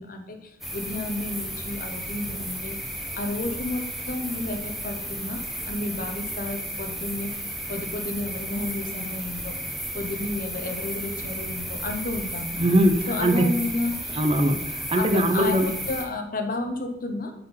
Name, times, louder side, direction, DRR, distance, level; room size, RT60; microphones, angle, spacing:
voice 1, 0.0-2.8 3.1-7.3 7.7-9.6 9.9-12.6 13.1-14.2 15.0-17.3, left 2 dB, 45° left, 5 dB, 0.9 m, -31 dB
sound 1, 0.6-16.1, equal, ahead, 1.0 m, -34 dB
voice 2, 12.6-13.5 14.1-15.7, right 1 dB, 30° right, 7 dB, 0.5 m, -21 dB
7.8 x 4.4 x 5.6 m, 0.79 s
head